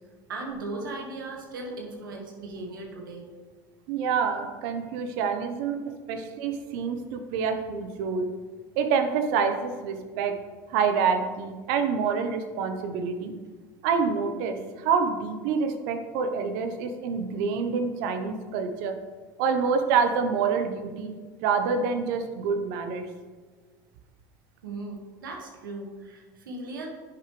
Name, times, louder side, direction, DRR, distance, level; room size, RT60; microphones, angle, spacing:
voice 1, 0.3-3.3 24.6-26.9, right 2 dB, 85° right, 1 dB, 1.5 m, -37 dB
voice 2, 3.9-8.3 8.7-10.3 10.7-13.3 13.8-19.0 19.4-21.1 21.4-23.1, right 5 dB, 70° right, 7 dB, 0.9 m, -27 dB
9.7 x 6.9 x 3.2 m, 1.4 s
hypercardioid pair, 75°, 11 cm